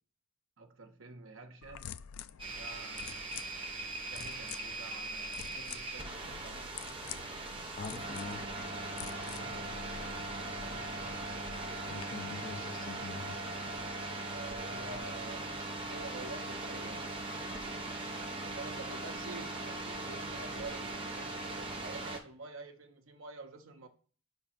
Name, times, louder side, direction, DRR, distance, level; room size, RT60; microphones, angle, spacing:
voice 1, 0.6-2.0 2.4-3.6 4.1-6.7 9.2-9.9 10.6-11.2 14.2-15.6 15.9-17.1 18.4-23.9, right 3 dB, 65° right, 0.8 m, -48 dB
sound 1, 1.6-12.0, left 9 dB, 75° left, 0.3 m, -49 dB
sound 2, 2.4-22.2, right 2 dB, 25° right, 0.8 m, -40 dB
voice 2, 7.8-8.4 11.9-13.4, left 3 dB, 40° left, 0.6 m, -43 dB
5.0 x 3.6 x 5.7 m
head